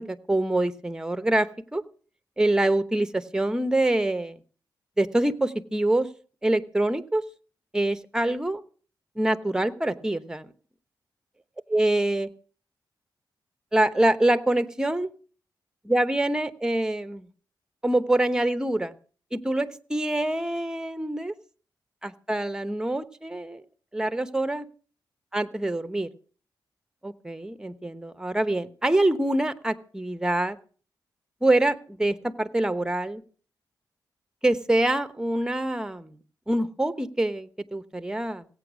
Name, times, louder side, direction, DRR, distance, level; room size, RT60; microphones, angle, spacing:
voice 1, 0.0-1.8 2.4-4.4 5.0-6.1 6.4-7.2 7.7-8.6 9.2-10.5 11.7-12.3 13.7-15.1 15.8-17.2 17.8-18.9 19.3-21.3 22.0-23.6 23.9-24.7 25.3-26.1 27.0-30.6 31.4-33.2 34.4-36.1 36.5-38.5, right 1 dB, 10° right, 11 dB, 1.0 m, -25 dB
16.5 x 8.8 x 6.1 m, 0.42 s
cardioid pair, 85°, 8 cm